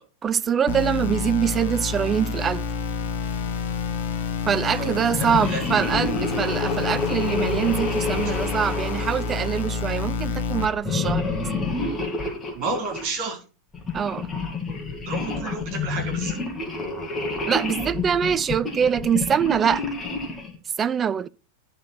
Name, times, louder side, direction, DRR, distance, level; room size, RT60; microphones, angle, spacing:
voice 1, 0.2-2.6 4.5-11.3 13.9-14.3 17.4-19.8 20.8-21.3, right 8 dB, 20° right, 0.4 m, -24 dB
sound 1, 0.7-10.7, left 5 dB, 55° left, 1.4 m, -28 dB
voice 2, 4.7-5.6 12.5-13.4 15.0-16.4, right 3 dB, 45° right, 5.0 m, -31 dB
sound 2, 5.1-9.9 10.8-13.1 13.7-20.6, left 3 dB, 15° left, 2.2 m, -29 dB
11.0 x 4.3 x 6.1 m
figure-of-eight pair, 90°, 0 cm